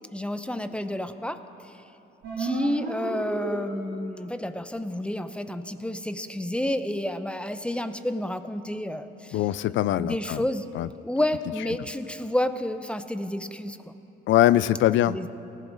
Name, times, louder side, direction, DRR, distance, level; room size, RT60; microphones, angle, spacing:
voice 1, 0.1-1.7 2.4-9.4 10.0-10.6 11.0-13.9 15.1-15.3, left 1 dB, 5° left, 10 dB, 0.7 m, -30 dB
sound 1, 2.2-4.2, right 3 dB, 85° right, 2.9 m, -33 dB
voice 2, 9.3-10.4 10.7-10.9 14.3-15.3, left 13 dB, 75° left, 18 dB, 0.4 m, -22 dB
18.5 x 15.0 x 4.0 m, 2.9 s
cardioid pair, 90°, 20 cm